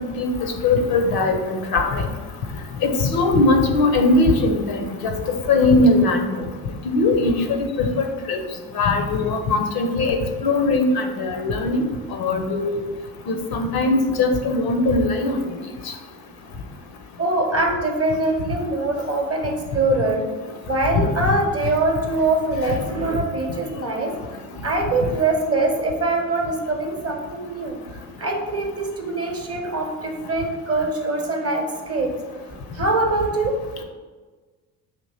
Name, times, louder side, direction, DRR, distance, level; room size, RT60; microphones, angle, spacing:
voice 1, 0.0-2.0 2.8-6.3 6.8-8.4 8.8-11.8 12.1-12.8 13.3-15.4 22.7-22.8, left 2 dB, 50° left, 4 dB, 0.7 m, -20 dB
voice 2, 17.2-20.2 20.7-24.1 24.6-32.1 32.7-33.5, right 2 dB, 30° right, 2 dB, 0.9 m, -23 dB
5.2 x 2.8 x 2.8 m, 1.4 s
hypercardioid pair, 55°, 49 cm